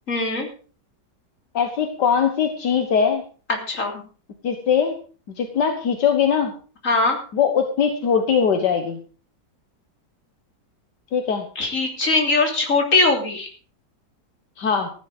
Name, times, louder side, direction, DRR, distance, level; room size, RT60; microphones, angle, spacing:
voice 1, 0.1-0.5 3.7-3.9 6.8-7.2 11.5-13.5, left 3 dB, 45° left, 2 dB, 3.6 m, -20 dB
voice 2, 1.5-3.2 4.4-4.9 5.4-6.5 7.3-9.0 11.1-11.5 14.6-14.9, left 7 dB, 70° left, 5 dB, 2.0 m, -21 dB
15.0 x 11.0 x 5.0 m, 0.40 s
omnidirectional pair, 1.9 m